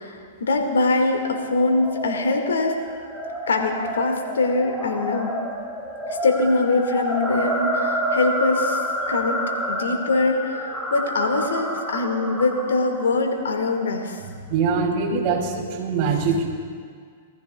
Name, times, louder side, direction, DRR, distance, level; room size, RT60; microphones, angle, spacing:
voice 1, 0.0-2.8 3.5-5.3 6.1-8.8 9.1-9.4 9.7-14.2, left 3 dB, 90° left, 2 dB, 1.9 m, -23 dB
sound 1, 1.5-13.9, equal, ahead, 1.8 m, -29 dB
voice 2, 14.5-16.5, right 5 dB, 45° right, -1 dB, 2.8 m, -23 dB
21.5 x 14.5 x 2.3 m, 2.1 s
hypercardioid pair, 125°, 0 cm